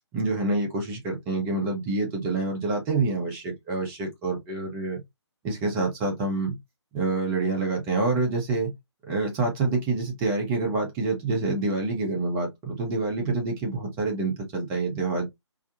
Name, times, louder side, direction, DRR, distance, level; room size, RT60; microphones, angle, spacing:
voice 1, 0.1-5.0 5.4-6.6 6.9-8.7 9.1-15.3, right 3 dB, 15° right, 0.8 m, -27 dB
3.5 x 2.1 x 2.4 m
figure-of-eight pair, 140°, 15 cm